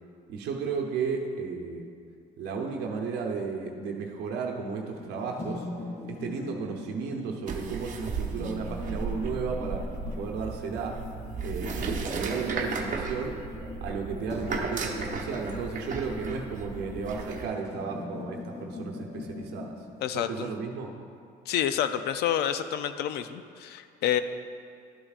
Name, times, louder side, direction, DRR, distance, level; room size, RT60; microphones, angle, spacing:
voice 1, 0.3-1.9 2.4-5.7 6.1-11.0 11.4-13.4 13.8-19.7 20.1-21.0, right 5 dB, 80° right, 1 dB, 0.8 m, -34 dB
sound 1, 4.8-20.6, left 2 dB, 45° left, 2.2 m, -41 dB
sound 2, 7.5-17.5, right 4 dB, 50° right, 0.9 m, -35 dB
voice 2, 20.0-20.5 21.5-24.2, left 10 dB, 75° left, 11 dB, 0.5 m, -28 dB
11.5 x 8.6 x 2.5 m, 2.3 s
cardioid pair, 110°, 17 cm